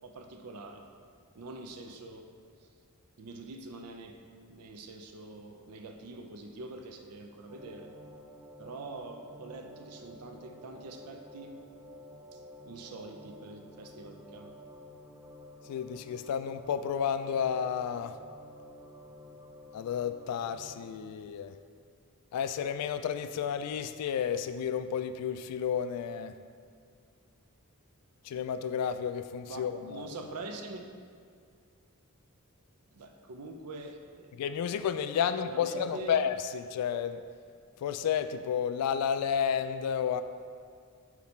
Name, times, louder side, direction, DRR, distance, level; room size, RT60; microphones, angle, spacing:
voice 1, 0.0-0.9 1.3-2.3 3.2-4.2 4.5-7.9 8.6-11.6 12.3-12.4 12.7-14.6 29.5-30.8 32.9-34.4 35.4-36.2, right 2 dB, 80° right, 5 dB, 0.5 m, -45 dB
sound 1, 7.5-20.9, left 1 dB, 15° right, 0.4 m, -51 dB
voice 2, 15.7-18.2 19.7-21.5 22.3-26.3 28.2-30.1 34.4-37.2 37.8-40.2, left 8 dB, 85° left, 11 dB, 0.3 m, -31 dB
5.8 x 4.1 x 4.3 m, 2.2 s
head